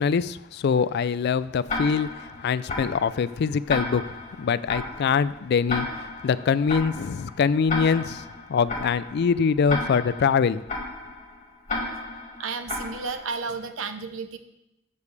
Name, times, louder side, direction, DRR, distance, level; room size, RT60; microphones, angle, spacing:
voice 1, 0.0-2.1 2.4-4.0 4.4-5.9 6.2-8.2 8.5-10.6, left 6 dB, 55° left, 17 dB, 0.3 m, -23 dB
Tick-tock, 1.7-13.5, left 2 dB, 40° left, 1.9 m, -34 dB
voice 2, 12.4-14.4, right 4 dB, 80° right, 9 dB, 0.8 m, -32 dB
13.0 x 6.8 x 3.3 m, 0.88 s
head